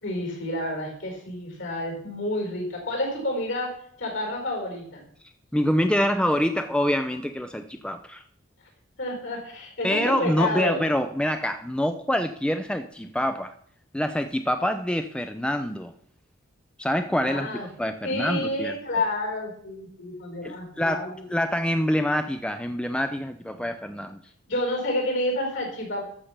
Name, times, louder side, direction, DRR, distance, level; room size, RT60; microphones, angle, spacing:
voice 1, 0.0-3.7 4.0-5.0 9.0-10.8 17.2-17.7 18.0-21.3 24.5-26.0, left 1 dB, 65° left, 1 dB, 4.9 m, -29 dB
voice 2, 5.5-8.2 9.8-13.5 13.9-15.9 16.8-17.5 17.8-19.0 20.4-24.2, equal, 5° left, 8 dB, 0.5 m, -26 dB
13.0 x 6.8 x 5.9 m, 0.65 s
head